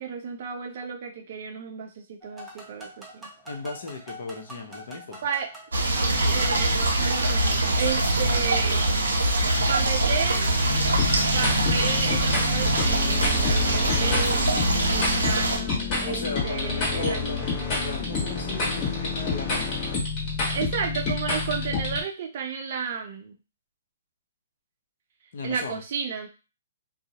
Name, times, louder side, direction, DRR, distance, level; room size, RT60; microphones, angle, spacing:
voice 1, 0.0-3.3 5.2-5.5 6.2-9.0 9.7-10.5 11.3-14.4 14.9-17.5 20.5-23.4 25.4-26.3, right 6 dB, 50° right, 3 dB, 0.6 m, -33 dB
sound 1, 2.2-8.8, right 1 dB, 5° right, 0.7 m, -43 dB
voice 2, 3.5-5.3 16.0-17.4 17.8-19.8 25.3-25.8, left 3 dB, 60° left, 4 dB, 0.6 m, -35 dB
sound 2, 5.7-15.6, right 1 dB, 90° right, 0.7 m, -23 dB
sound 3, 10.7-22.0, left 4 dB, 30° left, 1.1 m, -28 dB
2.3 x 2.0 x 2.8 m, 0.31 s
hypercardioid pair, 145°, 0 cm